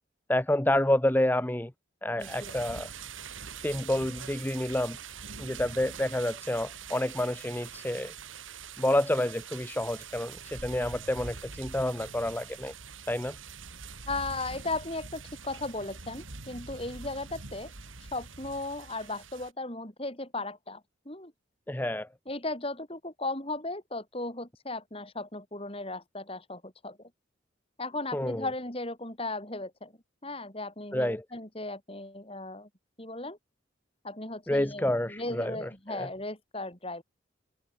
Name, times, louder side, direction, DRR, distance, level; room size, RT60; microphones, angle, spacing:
voice 1, 0.3-1.7 2.0-2.9 3.6-5.0 5.4-8.1 8.8-12.7 13.1-13.4 21.7-22.1 28.1-28.5 30.9-31.2 34.5-36.1, left 1 dB, 10° left, 0.7 m, -29 dB
voice 2, 2.2-2.5 14.1-17.7 18.1-21.3 22.3-27.1 27.8-29.9 30.2-32.7 33.0-33.4 34.0-37.0, left 2 dB, 30° left, 5.0 m, -36 dB
sound 1, 2.2-19.5, right 5 dB, 90° right, 3.3 m, -44 dB
head